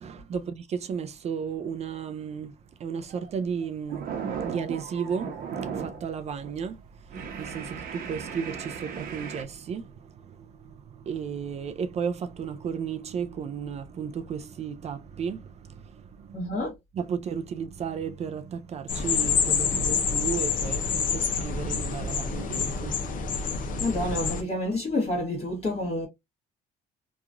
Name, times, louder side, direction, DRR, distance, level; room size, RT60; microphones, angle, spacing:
voice 1, 0.0-2.5 2.8-4.1 4.4-16.5 16.9-23.0, right 7 dB, 40° right, 0.4 m, -34 dB
sound 1, 3.0-3.3 3.6-6.1 6.4-6.6 7.1-9.4, right 7 dB, 60° right, 0.8 m, -36 dB
voice 2, 16.3-16.7 23.8-26.1, left 1 dB, 35° left, 1.1 m, -28 dB
sound 2, 18.9-24.4, left 5 dB, 55° left, 0.6 m, -27 dB
2.9 x 2.3 x 2.4 m
cardioid pair, 110°, 17 cm